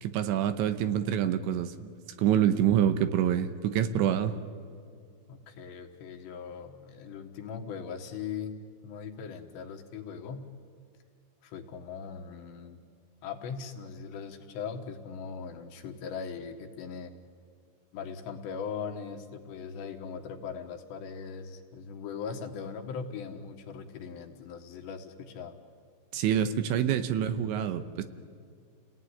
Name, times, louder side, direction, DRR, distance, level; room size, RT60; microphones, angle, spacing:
voice 1, 0.0-1.9 2.2-4.3 26.1-28.0, right 10 dB, 80° right, 9 dB, 3.1 m, -26 dB
voice 2, 5.3-8.6 8.8-10.5 11.4-12.8 13.2-17.1 17.9-25.6, left 6 dB, 70° left, 3 dB, 3.5 m, -40 dB
29.5 x 18.5 x 9.8 m, 2.4 s
omnidirectional pair, 5.5 m